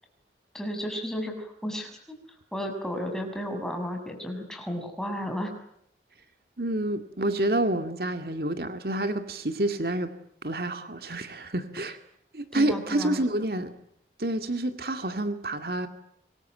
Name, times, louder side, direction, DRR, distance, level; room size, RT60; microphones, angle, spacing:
voice 1, 0.5-2.0 2.5-5.5 12.5-13.2, equal, 5° left, 3 dB, 6.5 m, -33 dB
voice 2, 6.6-10.1 10.4-12.0 12.3-13.7 14.2-15.9, right 1 dB, 60° right, 8 dB, 2.2 m, -28 dB
26.0 x 24.0 x 9.1 m, 0.72 s
head